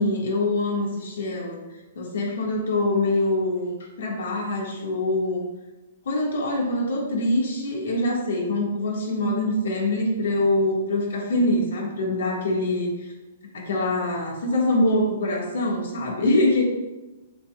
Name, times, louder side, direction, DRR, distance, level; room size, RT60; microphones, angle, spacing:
voice 1, 0.0-1.6 2.0-5.4 6.1-13.1 13.5-16.6, left 1 dB, 80° left, -1 dB, 1.8 m, -24 dB
7.1 x 6.9 x 2.4 m, 1.1 s
hypercardioid pair, 170°, 0 cm